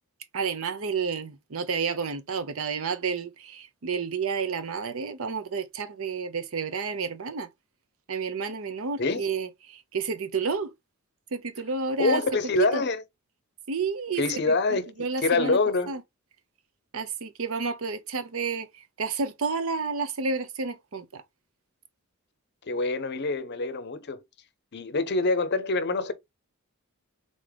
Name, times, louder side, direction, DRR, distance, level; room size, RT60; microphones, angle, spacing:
voice 1, 0.3-7.5 8.1-10.7 11.3-12.2 12.7-12.8 13.7-15.6 15.9-16.0 16.9-18.7 19.0-21.2, right 5 dB, 65° right, 0.7 m, -30 dB
voice 2, 12.0-13.0 14.2-15.9 22.7-24.2 24.7-26.1, left 3 dB, 50° left, 0.6 m, -26 dB
3.9 x 3.6 x 3.4 m
head